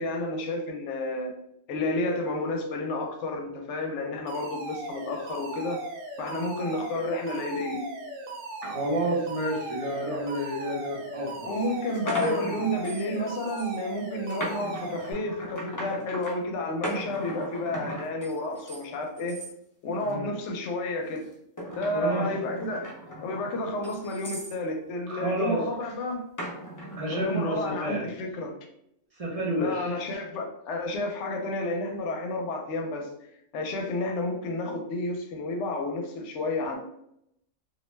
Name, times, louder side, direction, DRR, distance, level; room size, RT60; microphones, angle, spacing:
voice 1, 0.0-1.3 1.7-5.8 6.2-7.8 11.4-19.4 19.8-21.2 21.8-22.9 23.2-26.2 27.1-28.5 29.5-33.1 33.5-36.8, left 2 dB, 70° left, 3 dB, 0.9 m, -31 dB
Alarm, 4.3-15.1, right 2 dB, 85° right, 1.0 m, -38 dB
voice 2, 8.6-11.6 12.2-12.4 20.0-20.4 21.9-22.3 25.1-25.6 27.0-28.1 29.1-30.0, right 1 dB, 40° right, -3 dB, 0.5 m, -30 dB
sound 1, 11.0-11.1 11.6-13.2 13.5-13.8 14.3-16.3 16.8-18.8 19.2-19.5 20.0-20.4 21.1-24.6 26.4-27.2, right 1 dB, 30° left, 0.3 m, -38 dB
2.6 x 2.1 x 3.0 m, 0.75 s
omnidirectional pair, 1.3 m